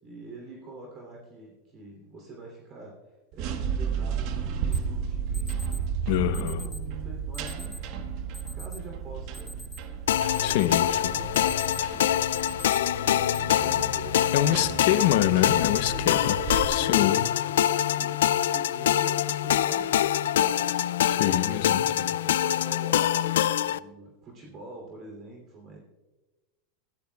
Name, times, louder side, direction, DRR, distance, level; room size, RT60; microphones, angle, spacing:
voice 1, 0.0-2.9 3.3-7.7 8.5-9.6 10.0-12.3 13.3-15.0 15.9-17.2 17.5-25.8, right 2 dB, 35° right, 3.0 m, -45 dB
sound 1, 3.3-16.6, right 7 dB, 55° right, 1.3 m, -34 dB
Alarm, 4.7-4.8 5.3-5.8 6.3-6.8 7.3-7.8 8.3-8.8 9.2-10.0 10.3-10.9 11.2-11.9 12.3-12.8 13.3-13.4 14.2-14.6, left 1 dB, 5° left, 0.9 m, -44 dB
voice 2, 6.1-6.7 10.4-11.0 14.3-16.4 16.7-17.3 21.0-21.8, left 13 dB, 65° left, 0.8 m, -25 dB
sound 2, 10.1-23.8, left 11 dB, 85° left, 0.3 m, -25 dB
20.0 x 13.5 x 2.3 m
supercardioid pair, 130°, 0 cm